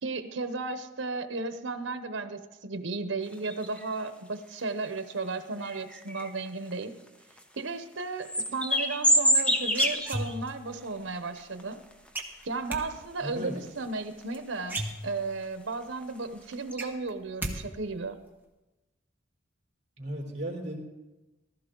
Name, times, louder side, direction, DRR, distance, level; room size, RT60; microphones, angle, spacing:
voice 1, 0.0-6.9 7.6-11.8 12.4-18.2, right 3 dB, 90° right, 10 dB, 0.8 m, -34 dB
sound 1, 3.2-4.1 5.0-5.1 5.6-7.1 7.4-7.5 8.0-10.5 10.8-10.9 11.4-12.2 12.6-13.2 13.5-13.7 14.2-14.5 15.1-15.2 15.4-15.5 16.0-16.2 16.5-16.7, equal, 5° left, 0.7 m, -27 dB
sound 2, 9.4-10.7 12.1-12.8 14.2-14.3 14.6-15.5 15.9-16.0 16.3-17.6 17.8-18.3, right 1 dB, 10° right, 1.3 m, -35 dB
voice 2, 13.2-13.5 20.0-20.8, right 1 dB, 40° right, -2 dB, 3.3 m, -35 dB
15.0 x 13.5 x 3.8 m, 1.1 s
head